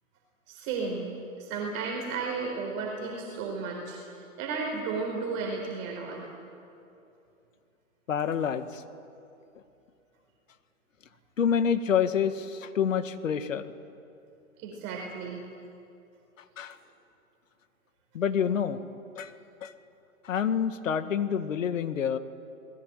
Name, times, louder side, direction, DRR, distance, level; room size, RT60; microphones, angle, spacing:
voice 1, 0.5-1.1 1.4-4.0 4.4-6.3 14.6-15.4, right 4 dB, 30° right, -1 dB, 4.4 m, -33 dB
voice 2, 8.1-8.8 11.4-13.7 16.6-16.8 18.1-18.8 19.2-19.3 19.6-19.7 20.2-22.2, left 7 dB, 65° left, 10 dB, 1.9 m, -27 dB
27.5 x 20.5 x 9.0 m, 2.7 s
hypercardioid pair, 150°, 42 cm